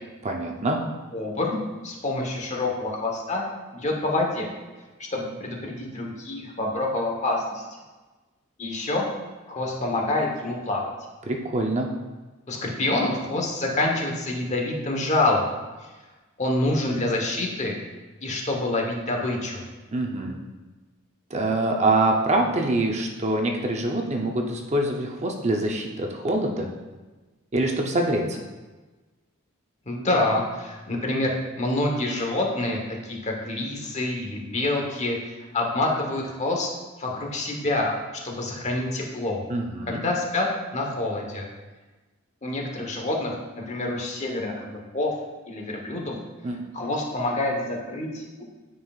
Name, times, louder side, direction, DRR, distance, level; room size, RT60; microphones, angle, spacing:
voice 1, 0.2-0.8 11.3-11.9 19.9-20.4 21.3-26.7 27.5-28.4 39.5-40.0 46.4-46.6, right 2 dB, 35° right, 1 dB, 0.7 m, -25 dB
voice 2, 1.1-1.6 1.8-3.4 3.7-4.5 5.1-7.6 8.6-9.1 9.5-10.9 12.5-15.5 15.8-15.9 16.4-17.7 18.2-19.6 29.9-36.7 37.0-37.9 38.2-39.4 39.9-40.5 40.7-41.5 42.4-45.1 45.5-46.2 46.7-48.4, left 2 dB, 35° left, 0 dB, 1.1 m, -27 dB
9.2 x 5.5 x 2.4 m, 1.2 s
head